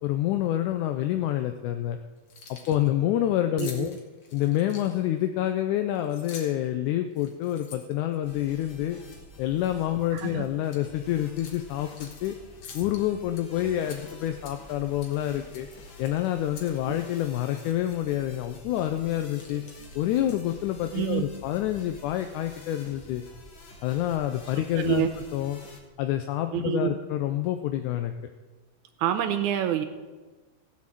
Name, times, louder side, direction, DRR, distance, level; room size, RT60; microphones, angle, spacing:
voice 1, 0.0-2.0 2.5-4.0 4.3-9.0 9.4-12.4 12.7-15.7 16.0-19.6 20.0-23.2 23.8-25.6 26.0-28.1, left 12 dB, 80° left, 7 dB, 2.1 m, -27 dB
Keys jangling, 2.2-2.9 3.6-5.2 6.0-6.7 7.1-8.7 9.1-9.3 9.6-10.3 10.6-10.8 11.4-12.3 12.6-13.4 13.8-14.8 15.0-15.2 15.5-16.8 17.1-17.2 17.6-17.7 18.3-18.6 18.9-20.6, left 5 dB, 65° left, 2.8 m, -47 dB
voice 2, 3.6-3.9 10.1-10.5 20.9-21.2 24.8-25.1 26.5-27.0 29.0-29.8, right 11 dB, 80° right, 8 dB, 2.1 m, -27 dB
sound 1, 8.2-25.8, left 2 dB, 45° left, 1.9 m, -49 dB
15.5 x 6.4 x 7.5 m, 1.3 s
omnidirectional pair, 3.5 m